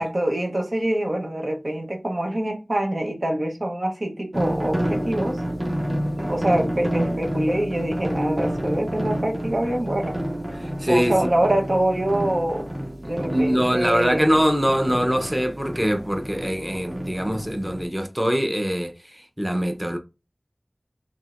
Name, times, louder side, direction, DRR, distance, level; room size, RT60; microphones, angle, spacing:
voice 1, 0.0-5.4 6.2-10.2 10.9-12.7 13.0-14.3, right 1 dB, 70° right, 0.9 m, -25 dB
sound 1, 4.3-17.9, equal, 40° right, 1.6 m, -29 dB
voice 2, 10.6-11.1 13.0-20.0, equal, 10° right, 0.8 m, -23 dB
4.7 x 3.5 x 2.4 m
wide cardioid pair, 40°, 0 cm